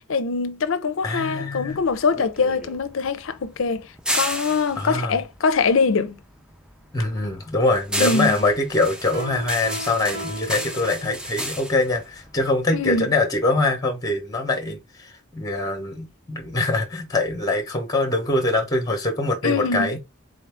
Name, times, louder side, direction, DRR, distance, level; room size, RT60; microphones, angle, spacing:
voice 1, 0.1-3.9 4.1-6.2 8.0-8.4 12.7-13.1 19.4-19.9, left 4 dB, 65° left, 0.5 m, -23 dB
voice 2, 1.0-1.8 4.8-5.2 6.9-20.0, left 2 dB, 15° left, 0.7 m, -23 dB
sound 1, 1.7-6.2 6.5-13.0, equal, 5° right, 0.3 m, -32 dB
Piano, 9.1-11.4, equal, 80° right, 0.9 m, -37 dB
3.9 x 2.5 x 3.3 m
head